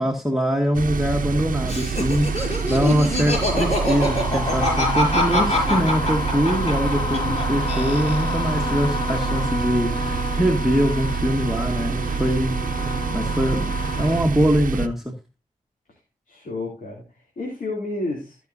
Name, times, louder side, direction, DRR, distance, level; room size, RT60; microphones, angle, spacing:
voice 1, 0.0-15.1, equal, ahead, 3 dB, 1.7 m, -23 dB
sound 1, 0.7-14.9, right 6 dB, 75° right, 0.8 m, -27 dB
Laughter, 1.6-7.4 7.7-8.5, left 1 dB, 50° left, 6.5 m, -24 dB
sound 2, 4.0-14.2, left 3 dB, 30° left, 3.4 m, -30 dB
voice 2, 16.3-18.4, left 2 dB, 70° left, -2 dB, 3.1 m, -31 dB
17.5 x 6.1 x 2.7 m, 0.27 s
cardioid pair, 45°, 14 cm